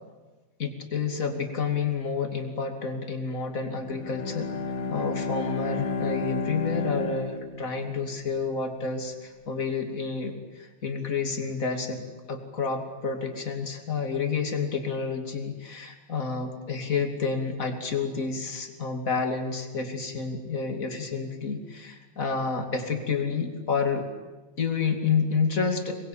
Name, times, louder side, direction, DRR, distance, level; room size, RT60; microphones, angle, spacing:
voice 1, 0.6-4.5 4.9-12.0 12.3-24.0 24.6-26.1, left 5 dB, 25° left, 4 dB, 2.2 m, -29 dB
Bowed string instrument, 3.8-8.2, left 4 dB, 50° left, 2.9 m, -31 dB
27.0 x 22.5 x 8.9 m, 1.2 s
omnidirectional pair, 5.2 m